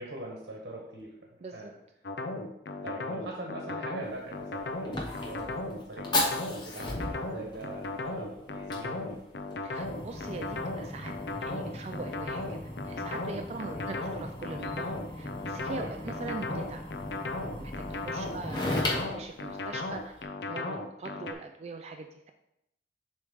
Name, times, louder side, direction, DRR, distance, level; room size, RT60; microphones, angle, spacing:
voice 1, 0.0-1.7 2.8-9.3 13.6-13.9 15.7-16.2 18.2-18.3, right 2 dB, 60° right, -1 dB, 1.3 m, -43 dB
voice 2, 1.4-1.7 9.6-11.1 11.4-14.9 15.1-16.8 17.4-22.3, right 3 dB, 35° right, 5 dB, 0.3 m, -42 dB
sound 1, 2.0-21.3, left 2 dB, 70° left, 0.6 m, -36 dB
Fire, 4.0-20.2, left 1 dB, 25° left, 0.9 m, -37 dB
7.2 x 3.2 x 4.9 m, 0.83 s
head